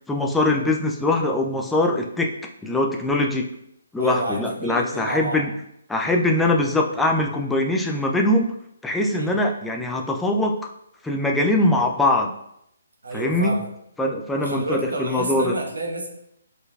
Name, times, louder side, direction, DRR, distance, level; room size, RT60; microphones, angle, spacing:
voice 1, 0.1-2.3 2.6-3.5 3.9-5.5 5.9-8.5 8.8-10.7 11.0-12.3 13.1-13.5 14.0-15.5, left 2 dB, 5° left, 1 dB, 0.4 m, -22 dB
voice 2, 4.0-5.4 9.1-9.3 13.0-13.7 14.4-16.1, right 2 dB, 65° right, 1 dB, 1.1 m, -29 dB
5.2 x 3.9 x 2.4 m, 0.75 s
figure-of-eight pair, 135°, 0 cm